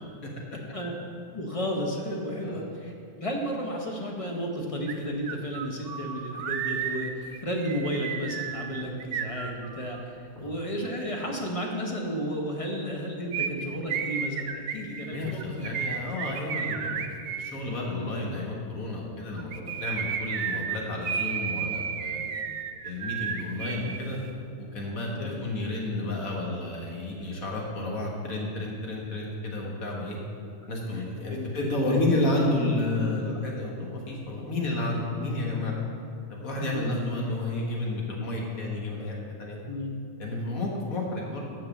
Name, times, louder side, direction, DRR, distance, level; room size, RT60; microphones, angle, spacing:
voice 1, 1.3-15.4 25.2-25.4 30.9-31.0 31.3-32.0 36.6-36.8 39.7-40.0, equal, 30° left, 0 dB, 0.7 m, -33 dB
sound 1, 4.9-5.0 5.3-10.0 13.3-17.5 19.4-24.0 24.2-24.3, right 7 dB, 90° right, 0.5 m, -32 dB
voice 2, 15.1-16.9 17.4-22.2 22.8-24.2 24.6-30.2 30.7-35.7 36.3-39.6 40.2-41.5, left 2 dB, 65° left, -2 dB, 1.7 m, -31 dB
6.3 x 6.1 x 7.1 m, 2.4 s
omnidirectional pair, 1.6 m